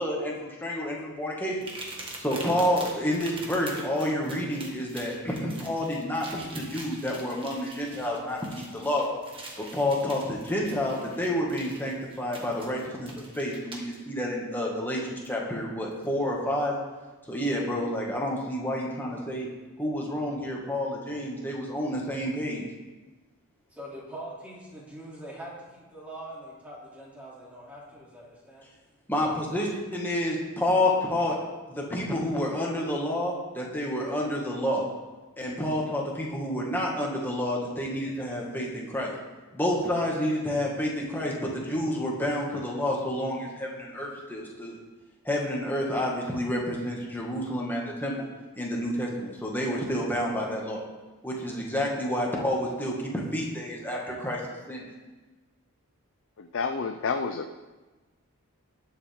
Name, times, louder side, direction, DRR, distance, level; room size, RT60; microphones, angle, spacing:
voice 1, 0.0-1.7 2.2-9.1 9.7-16.7 17.3-19.5 19.8-22.6 29.1-31.4 31.7-34.8 35.4-39.1 39.5-44.8 45.2-48.3 48.6-50.8 51.2-54.4 54.7-54.8, left 1 dB, 10° left, -3 dB, 1.9 m, -29 dB
sound 1, 1.6-14.0 15.2-15.3 15.9-16.0, right 2 dB, 25° right, 1.6 m, -44 dB
voice 2, 23.7-28.6, right 1 dB, 5° right, -5 dB, 2.8 m, -43 dB
voice 3, 56.4-57.5, left 4 dB, 55° left, 7 dB, 0.5 m, -30 dB
20.0 x 7.2 x 3.6 m, 1.2 s
head